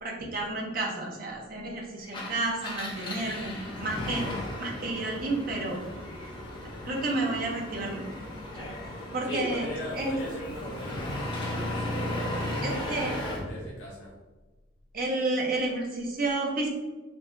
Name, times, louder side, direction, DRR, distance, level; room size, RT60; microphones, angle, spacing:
voice 1, 0.0-4.3 4.6-5.8 6.8-8.1 8.6-8.7 9.1-9.7 9.9-10.2 12.6-13.2 14.9-16.7, right 2 dB, 45° right, -1 dB, 0.7 m, -31 dB
Engine, 2.0-13.5, left 1 dB, 25° left, 0.7 m, -36 dB
voice 2, 9.3-14.1, left 1 dB, 75° left, -5 dB, 0.8 m, -39 dB
4.6 x 2.7 x 2.5 m, 1.2 s
head